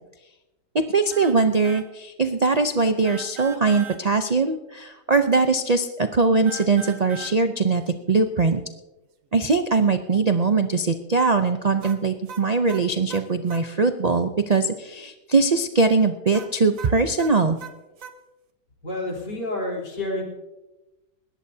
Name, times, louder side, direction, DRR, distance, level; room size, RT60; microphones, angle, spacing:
voice 1, 0.7-7.8 8.1-8.6 9.3-17.6, right 4 dB, 80° right, 8 dB, 0.3 m, -21 dB
sound 1, 1.1-1.4 1.6-1.9 3.0-4.0 6.5-7.4 11.8-13.7 16.3-18.2, right 7 dB, 55° right, 1.3 m, -40 dB
voice 2, 18.8-20.2, left 1 dB, 80° left, -2 dB, 4.5 m, -29 dB
20.5 x 17.5 x 2.8 m, 1.0 s
omnidirectional pair, 1.8 m